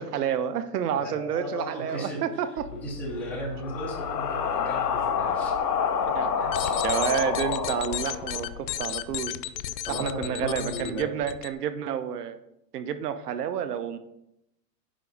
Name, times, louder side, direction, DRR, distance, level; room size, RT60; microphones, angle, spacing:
voice 1, 0.0-2.7 4.6-4.7 6.0-9.4 9.9-12.4 12.7-14.0, right 9 dB, 65° right, 10 dB, 1.0 m, -30 dB
voice 2, 1.0-2.2 2.8-5.6 6.6-6.7 9.9-11.1, equal, 5° left, -4 dB, 0.5 m, -35 dB
sound 1, 2.6-8.7, left 6 dB, 70° left, 1.6 m, -28 dB
sound 2, 6.4-11.5, left 12 dB, 90° left, 0.7 m, -34 dB
9.7 x 3.8 x 5.4 m, 0.83 s
supercardioid pair, 165°, 50 cm